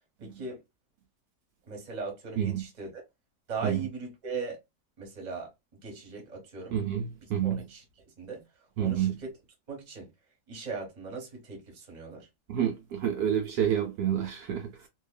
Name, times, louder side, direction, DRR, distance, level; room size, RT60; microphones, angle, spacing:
voice 1, 0.2-0.6 1.7-3.0 3.5-4.6 5.0-5.5 5.8-6.8 7.4-7.8 8.2-8.4 8.8-9.3 9.7-10.1 10.5-12.3, right 4 dB, 30° right, 0.9 m, -38 dB
voice 2, 6.7-7.6 8.8-9.1 12.5-14.9, right 9 dB, 70° right, 1.0 m, -29 dB
2.8 x 2.3 x 2.2 m
omnidirectional pair, 1.8 m